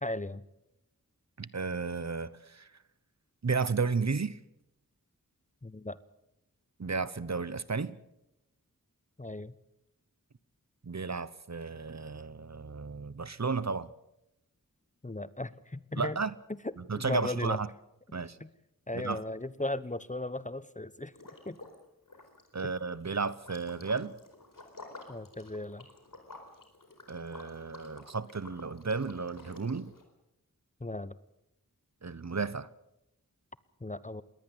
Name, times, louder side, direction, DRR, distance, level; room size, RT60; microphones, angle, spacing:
voice 1, 0.0-0.4 5.6-6.0 9.2-9.5 15.0-16.2 16.6-17.6 18.4-18.5 18.9-21.1 21.5-21.6 22.6-22.7 25.1-25.9 30.8-31.1 33.8-34.2, left 2 dB, 20° left, 17 dB, 0.8 m, -36 dB
voice 2, 1.4-2.7 3.4-4.4 6.8-8.0 10.8-13.9 16.0-16.3 16.8-17.7 18.1-18.4 18.9-19.2 22.5-24.2 27.1-29.9 32.0-32.7, right 4 dB, 50° right, 17 dB, 0.9 m, -33 dB
Liquid, 21.1-21.8 22.1-30.0, left 2 dB, 70° left, 4.4 m, -51 dB
21.5 x 18.5 x 7.9 m, 0.86 s
wide cardioid pair, 55°, 34 cm